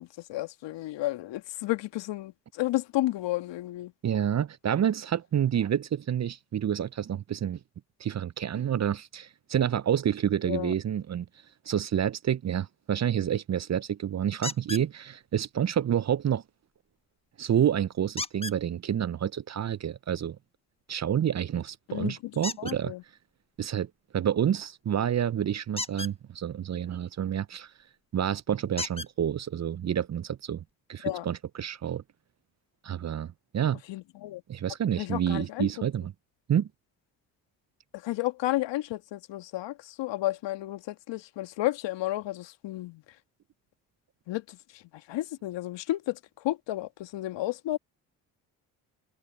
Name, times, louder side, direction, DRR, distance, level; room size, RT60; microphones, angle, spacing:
voice 1, 0.0-3.9 10.4-10.7 21.9-22.3 22.6-23.0 31.0-31.2 33.9-34.4 35.0-35.9 37.9-43.0 44.3-47.8, left 16 dB, 70° left, 1.8 m, -32 dB
voice 2, 4.0-7.6 8.0-11.3 11.7-16.4 17.4-20.4 20.9-22.9 23.6-27.7 28.1-30.6 30.9-32.0 32.8-33.8 34.5-36.1 36.5-36.7, right 9 dB, 35° right, 0.7 m, -28 dB
sound 1, 14.4-14.9 18.2-18.6 22.4-22.8 25.7-26.1 27.8-27.9 28.8-29.1 30.1-30.2 30.7-30.8, left 2 dB, 10° left, 1.5 m, -35 dB
hypercardioid pair, 50°, 45 cm